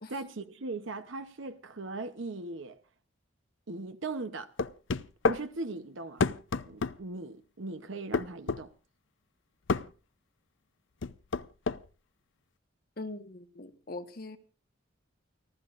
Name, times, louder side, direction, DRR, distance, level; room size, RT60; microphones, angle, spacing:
voice 1, 0.1-2.8 3.7-4.5 5.3-6.2 6.6-8.7, right 3 dB, 75° right, 0.8 m, -39 dB
sound 1, 4.6-5.4 6.2-7.0 8.1-8.6 9.7-9.9 11.0-11.8, left 4 dB, 70° left, 0.6 m, -28 dB
voice 2, 13.0-14.4, left 2 dB, 45° left, 1.3 m, -41 dB
29.5 x 13.0 x 2.5 m
head